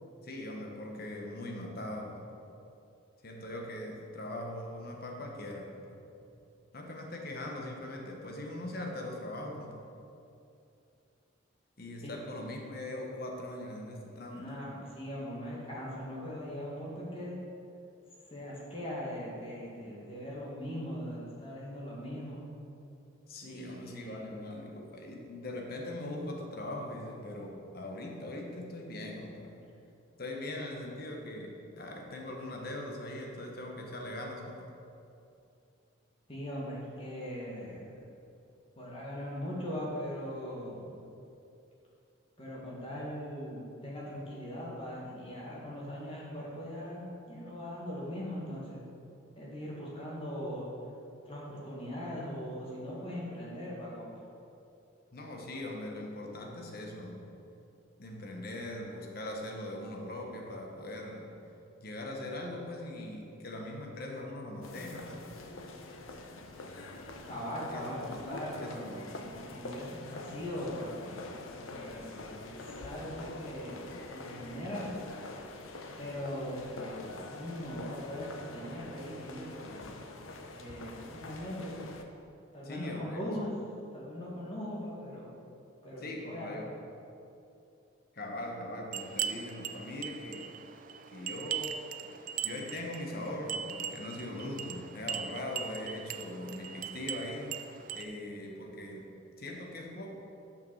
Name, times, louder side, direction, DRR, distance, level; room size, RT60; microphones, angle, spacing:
voice 1, 0.2-2.3 3.2-6.0 6.7-9.8 11.8-14.5 23.2-29.5 30.2-34.7 55.1-57.2 58.0-61.3 61.8-65.4 67.7-68.2 68.6-69.3 82.6-83.3 86.0-86.8 88.1-90.5 91.1-91.8 92.4-97.6 97.9-100.1, left 1 dB, 45° left, 1 dB, 1.1 m, -41 dB
voice 2, 14.3-17.4 18.3-22.4 23.4-24.4 36.3-37.9 38.8-41.0 42.4-48.8 49.3-50.7 51.3-54.2 67.2-71.2 71.7-73.8 74.1-74.9 76.0-79.9 80.5-81.9 82.5-83.5 83.9-85.3 85.8-86.6, equal, 25° left, -5 dB, 1.9 m, -40 dB
sound 1, 64.6-82.0, left 2 dB, 80° left, 0.7 m, -45 dB
sound 2, 88.9-98.0, right 8 dB, 40° right, 0.3 m, -40 dB
6.7 x 5.9 x 6.4 m, 2.7 s
head